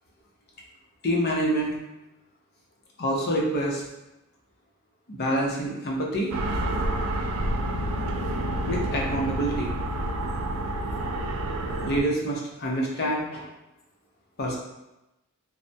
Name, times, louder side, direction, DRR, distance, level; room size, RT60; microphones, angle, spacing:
voice 1, 1.0-1.7 3.0-3.8 5.1-6.3 8.6-9.8 11.8-13.4 14.4-14.6, right 1 dB, 45° left, -2 dB, 0.6 m, -26 dB
sound 1, 6.3-12.0, right 1 dB, 65° right, 0.3 m, -28 dB
3.2 x 2.0 x 2.6 m, 0.93 s
head